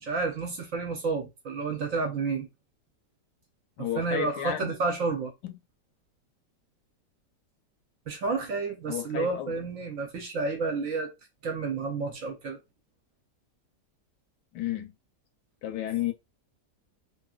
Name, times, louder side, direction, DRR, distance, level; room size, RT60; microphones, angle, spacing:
voice 1, 0.0-2.5 4.0-5.3 8.1-11.1 11.4-12.6, right 4 dB, 60° right, 0.9 m, -30 dB
voice 2, 3.8-4.8 5.4-5.6 8.9-9.5 14.5-14.9 15.6-16.1, left 12 dB, 80° left, 1.2 m, -32 dB
3.0 x 2.6 x 2.3 m
omnidirectional pair, 1.8 m